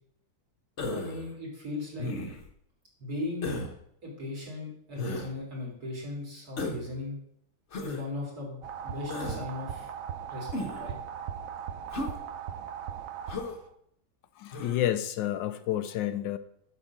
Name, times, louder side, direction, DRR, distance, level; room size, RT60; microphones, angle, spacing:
Human voice, 0.8-1.3 2.0-2.5 3.4-3.7 5.0-5.3 6.6-6.9 7.7-8.0 9.1-9.4 10.5-10.9 11.9-12.2 13.3-13.6 14.5-14.8, left 2 dB, 40° left, 1.3 m, -34 dB
voice 1, 0.9-2.1 3.0-3.5 4.0-7.2 7.8-9.9 10.3-11.0, left 2 dB, 50° right, -3 dB, 3.8 m, -38 dB
sound 1, 8.6-13.7, right 8 dB, 65° right, 0.8 m, -38 dB
voice 2, 14.4-16.4, left 12 dB, 75° left, 12 dB, 1.2 m, -30 dB
7.9 x 5.7 x 7.3 m, 0.71 s
omnidirectional pair, 2.1 m